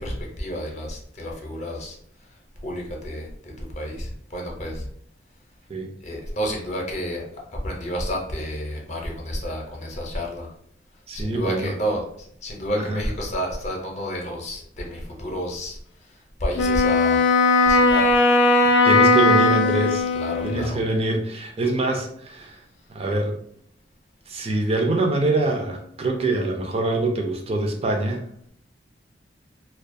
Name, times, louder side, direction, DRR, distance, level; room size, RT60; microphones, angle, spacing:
voice 1, 0.0-2.0 2.6-3.3 3.8-4.8 6.0-7.2 7.6-10.5 11.1-12.0 12.4-15.8 16.4-17.2 17.6-18.1 20.2-20.8, equal, 40° left, -1 dB, 0.6 m, -30 dB
voice 2, 11.1-11.7 12.7-13.0 18.8-20.1 20.4-22.6 22.9-23.4 24.3-28.2, right 2 dB, 35° right, 2 dB, 0.4 m, -24 dB
Wind instrument woodwind instrument, 16.5-20.7, left 3 dB, 80° left, 0.3 m, -18 dB
2.3 x 2.2 x 2.5 m, 0.66 s
head